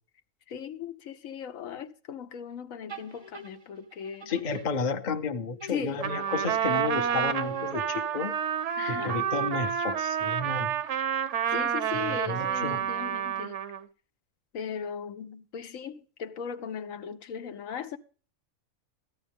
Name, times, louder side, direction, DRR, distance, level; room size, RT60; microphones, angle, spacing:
voice 1, 0.5-4.3 5.7-6.0 8.8-9.2 11.5-13.6 14.5-18.0, left 7 dB, 75° left, 1.1 m, -38 dB
sound 1, 2.9-5.3 5.6-8.4, right 2 dB, 25° right, 0.7 m, -47 dB
voice 2, 4.3-8.3 8.9-10.7 11.9-12.8, left 4 dB, 40° left, 0.8 m, -32 dB
Trumpet, 6.0-13.8, right 8 dB, 65° right, 0.9 m, -29 dB
14.0 x 10.0 x 3.5 m
omnidirectional pair, 1.4 m